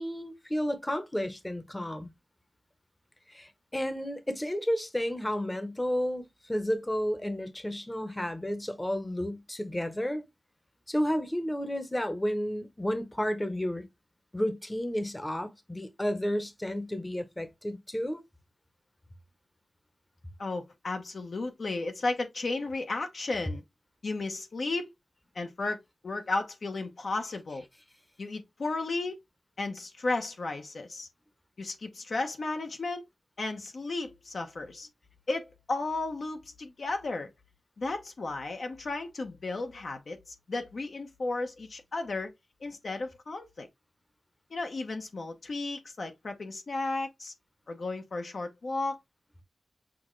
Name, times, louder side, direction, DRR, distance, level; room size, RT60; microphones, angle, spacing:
voice 1, 0.0-2.1 3.3-10.2 10.9-13.8 14.3-18.2, equal, 15° left, 0.8 m, -32 dB
voice 2, 20.4-23.6 24.0-24.9 25.3-27.6 28.2-29.2 29.6-31.1 31.6-33.0 33.4-34.9 35.3-37.3 37.8-42.3 42.6-43.7 44.5-47.3 47.7-49.0, left 3 dB, 75° left, 0.9 m, -34 dB
6.2 x 2.4 x 3.1 m
wide cardioid pair, 80°, 0 cm